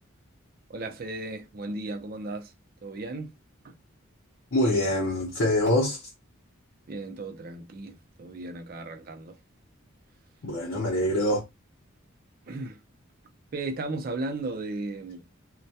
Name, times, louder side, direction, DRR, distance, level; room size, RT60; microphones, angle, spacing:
voice 1, 0.7-2.5 2.8-3.3 3.6-3.7 6.9-9.4 12.5-12.8 13.5-15.4, right 2 dB, 45° right, 0.4 m, -35 dB
voice 2, 4.5-6.1 10.4-11.5, left 1 dB, 65° left, 0.6 m, -25 dB
2.2 x 2.1 x 2.7 m
head